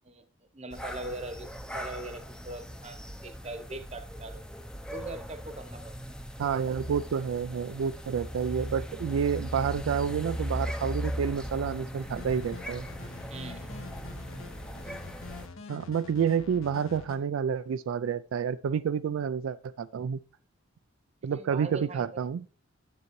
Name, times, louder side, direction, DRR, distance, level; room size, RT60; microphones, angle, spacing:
voice 1, 0.5-4.4 4.9-6.0 13.3-13.8 21.2-22.1, right 2 dB, 30° right, 0.9 m, -41 dB
sound 1, 0.7-15.5, equal, 5° left, 0.6 m, -38 dB
voice 2, 6.4-12.9 15.7-20.2 21.2-22.4, right 7 dB, 75° right, 0.3 m, -29 dB
sound 2, 12.1-17.2, left 4 dB, 75° left, 1.2 m, -46 dB
9.7 x 7.6 x 3.1 m
head